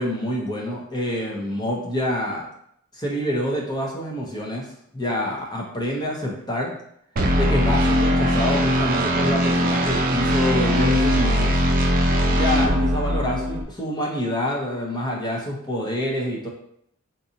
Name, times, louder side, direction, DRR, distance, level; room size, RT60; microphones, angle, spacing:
voice 1, 0.0-2.5 2.9-4.7 4.9-6.7 7.3-11.6 12.3-16.5, left 1 dB, 20° left, -1 dB, 0.6 m, -26 dB
sound 1, 7.2-13.6, equal, 40° right, 0.4 m, -20 dB
3.9 x 2.5 x 2.7 m, 0.71 s
head